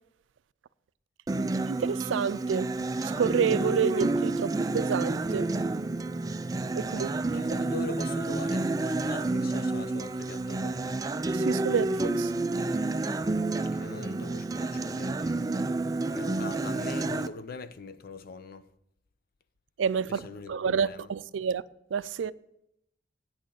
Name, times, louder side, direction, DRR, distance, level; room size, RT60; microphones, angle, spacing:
Acoustic guitar, 1.3-17.3, right 2 dB, 20° right, 0.3 m, -29 dB
voice 1, 1.7-2.7 3.0-5.5 6.7-7.4 11.3-12.3 19.8-21.6 21.9-22.3, right 6 dB, 85° right, 0.4 m, -29 dB
voice 2, 7.3-11.0 13.5-15.5 16.1-18.7 20.1-21.1, left 4 dB, 55° left, 0.6 m, -42 dB
8.6 x 6.3 x 8.2 m
head